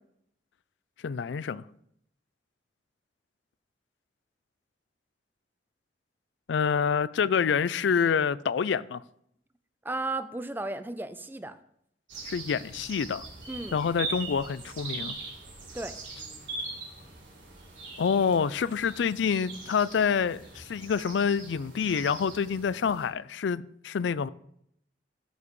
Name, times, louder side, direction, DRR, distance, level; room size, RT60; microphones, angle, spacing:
voice 1, 1.0-1.6 6.5-9.0 12.3-13.2 13.7-15.2 18.0-24.3, left 6 dB, 75° left, 0.4 m, -27 dB
voice 2, 9.8-11.6 13.5-13.8 15.7-15.9, right 2 dB, 10° right, 0.5 m, -34 dB
sound 1, 12.1-23.1, right 3 dB, 90° right, 3.3 m, -41 dB
14.0 x 7.2 x 3.2 m
head